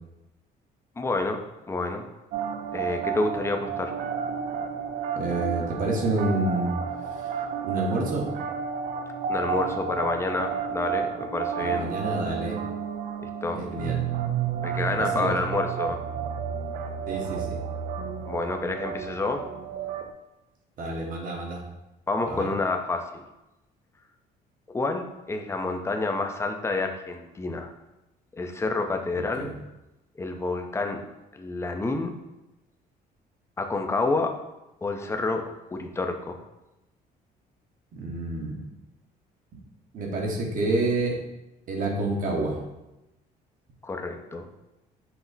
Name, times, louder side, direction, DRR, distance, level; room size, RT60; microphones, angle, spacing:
voice 1, 1.0-2.0 2.7-3.9 9.3-11.9 13.2-13.6 14.6-16.0 18.3-19.5 22.1-23.2 24.7-27.7 28.4-29.5 30.2-31.0 31.3-32.1 33.6-34.3 34.8-35.4 35.7-36.4 43.8-44.5, left 3 dB, 15° left, 4 dB, 0.5 m, -29 dB
sound 1, 2.3-20.1, right 7 dB, 70° right, 0.4 m, -31 dB
voice 2, 5.1-6.8 7.6-8.3 11.6-12.6 13.5-14.0 14.9-15.4 17.1-17.6 20.8-21.6 22.3-22.5 29.4-29.5 37.9-38.6 39.5-39.6 39.9-41.2 41.7-42.6, right 2 dB, 55° right, 0 dB, 1.0 m, -28 dB
5.9 x 2.0 x 3.9 m, 0.96 s
cardioid pair, 110°, 17 cm